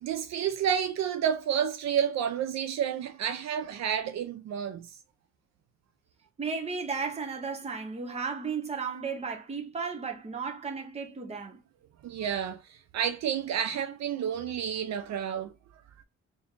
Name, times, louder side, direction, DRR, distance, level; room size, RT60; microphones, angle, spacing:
voice 1, 0.0-4.9 12.0-15.5, right 8 dB, 65° right, 0.4 m, -30 dB
voice 2, 6.4-11.6, right 5 dB, 20° right, 0.7 m, -34 dB
3.4 x 2.6 x 3.7 m
cardioid pair, 145°, 29 cm